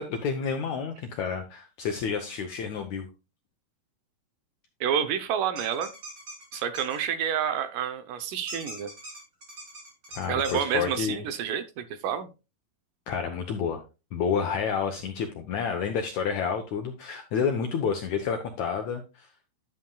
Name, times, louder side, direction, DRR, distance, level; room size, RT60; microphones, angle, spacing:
voice 1, 0.0-3.1 10.1-11.2 13.1-13.8 14.1-19.3, left 6 dB, 75° left, 5 dB, 1.7 m, -29 dB
voice 2, 4.8-5.9 6.5-8.9 10.3-12.3, right 8 dB, 75° right, 10 dB, 2.1 m, -29 dB
sound 1, 5.5-7.0 8.5-10.6, right 1 dB, 25° right, 2.9 m, -42 dB
11.5 x 7.6 x 2.3 m, 0.28 s
omnidirectional pair, 4.5 m